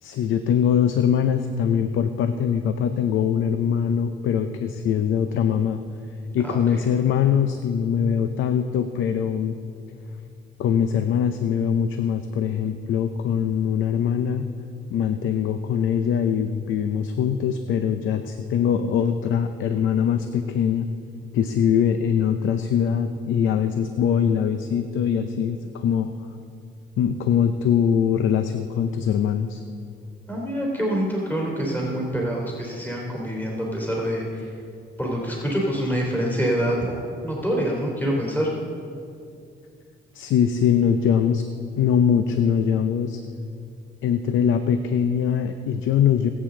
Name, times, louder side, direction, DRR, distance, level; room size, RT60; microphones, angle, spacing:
voice 1, 0.0-5.8 6.3-9.6 10.6-14.5 14.9-20.9 21.3-26.1 27.0-29.6 40.1-41.4 41.8-43.2 44.0-46.3, left 8 dB, 80° left, 9 dB, 0.6 m, -22 dB
voice 2, 6.4-6.8 30.3-34.5 35.0-36.8 37.2-38.5, equal, 10° left, -3 dB, 3.0 m, -26 dB
20.5 x 8.1 x 3.8 m, 2.4 s
cardioid pair, 90°, 20 cm